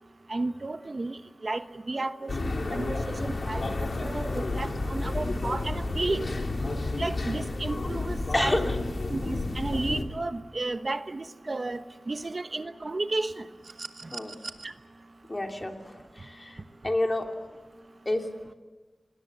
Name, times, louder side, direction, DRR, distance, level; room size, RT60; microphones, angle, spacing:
voice 1, 0.3-3.6 4.0-6.3 7.0-8.6 9.1-13.5, right 2 dB, 45° right, 9 dB, 1.0 m, -32 dB
sound 1, 2.3-10.0, left 2 dB, 65° left, 2.9 m, -31 dB
voice 2, 8.3-8.8 14.1-14.4 15.3-17.3 18.0-18.3, left 1 dB, 30° left, 3 dB, 3.1 m, -30 dB
sound 2, 13.6-14.7 16.2-16.3, right 3 dB, 65° right, 1.4 m, -41 dB
28.0 x 20.5 x 8.1 m, 1.3 s
wide cardioid pair, 70°, 0 cm